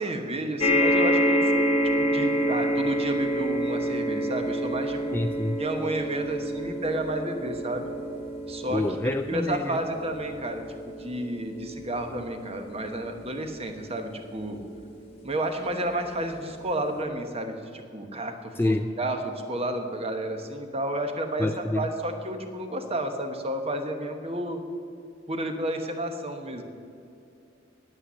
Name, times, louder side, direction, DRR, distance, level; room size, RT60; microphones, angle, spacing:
voice 1, 0.0-1.6 2.0-5.2 5.6-7.9 8.5-8.8 9.3-14.6 15.2-24.6 25.3-26.6, right 1 dB, 30° right, 6 dB, 1.1 m, -31 dB
sound 1, 0.6-15.2 15.9-16.0 16.3-16.4, equal, 30° left, 1.2 m, -28 dB
voice 2, 5.1-5.6 8.7-9.8 18.6-18.9 21.4-21.9, left 1 dB, 10° left, 7 dB, 0.3 m, -27 dB
9.9 x 8.7 x 8.4 m, 2.6 s
head